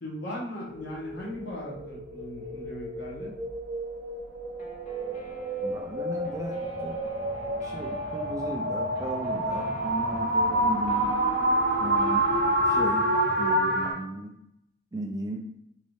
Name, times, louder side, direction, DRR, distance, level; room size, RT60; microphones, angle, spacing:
voice 1, 0.0-3.3, left 1 dB, 60° left, -4 dB, 1.1 m, -38 dB
sound 1, 0.7-13.9, right 1 dB, 50° right, 0.6 m, -28 dB
Guitar, 4.6-13.3, equal, 40° left, 0.6 m, -48 dB
voice 2, 5.6-7.0 7.6-11.1 11.8-12.2 12.6-13.1 13.4-14.3 14.9-15.5, right 1 dB, 20° right, 2 dB, 0.3 m, -36 dB
3.1 x 2.6 x 3.1 m, 0.77 s
head